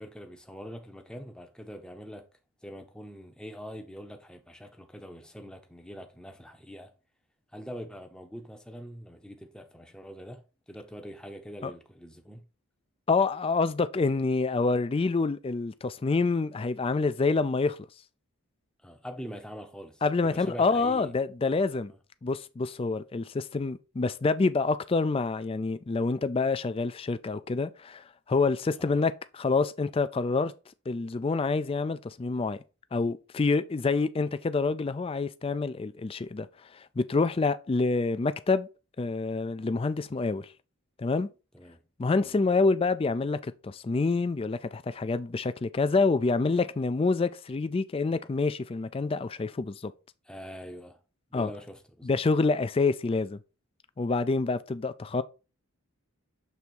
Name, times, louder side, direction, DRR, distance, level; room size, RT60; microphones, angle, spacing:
voice 1, 0.0-2.3 2.6-6.9 7.5-12.4 18.8-21.1 28.8-29.0 41.5-41.8 42.2-42.4 50.3-51.0 51.3-52.2, equal, 5° left, 0.7 m, -44 dB
voice 2, 13.1-17.8 20.0-21.9 22.2-30.5 30.9-32.6 32.9-36.5 36.7-38.7 39.0-40.5 41.0-41.3 42.0-49.9 51.3-51.5 52.0-53.4 54.0-55.2, left 3 dB, 25° left, 0.3 m, -27 dB
6.9 x 3.5 x 4.5 m
head